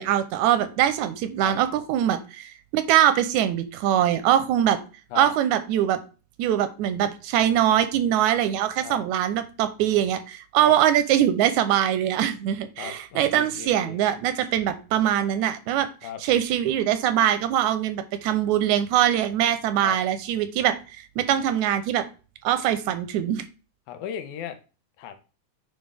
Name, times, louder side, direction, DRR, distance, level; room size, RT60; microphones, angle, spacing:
voice 1, 0.0-4.8 5.2-6.0 6.4-15.9 16.2-20.8 21.2-22.1 22.4-23.4, right 11 dB, 85° right, 11 dB, 2.0 m, -22 dB
voice 2, 12.8-14.1 16.0-16.2 19.8-20.0 23.9-24.6 25.0-25.2, left 9 dB, 80° left, 8 dB, 2.2 m, -36 dB
8.8 x 3.7 x 3.3 m, 0.34 s
omnidirectional pair, 3.4 m